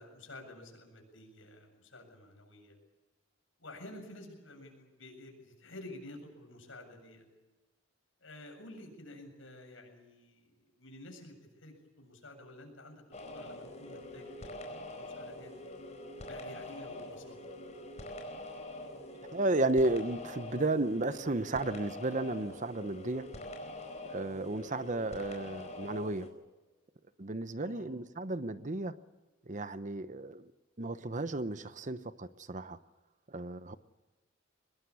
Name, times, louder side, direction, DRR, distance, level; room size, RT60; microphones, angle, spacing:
voice 1, 0.0-2.8 3.6-7.3 8.2-14.6 14.9-15.5 16.2-17.4 27.6-27.9, left 1 dB, 65° left, 3 dB, 7.6 m, -51 dB
sound 1, 13.1-26.3, left 1 dB, 35° left, 4.6 m, -45 dB
voice 2, 19.3-23.3 24.1-26.3 27.2-28.9 29.5-30.5 30.8-32.8 33.3-33.8, right 2 dB, 40° right, 13 dB, 0.9 m, -33 dB
23.5 x 21.0 x 8.5 m, 1.2 s
head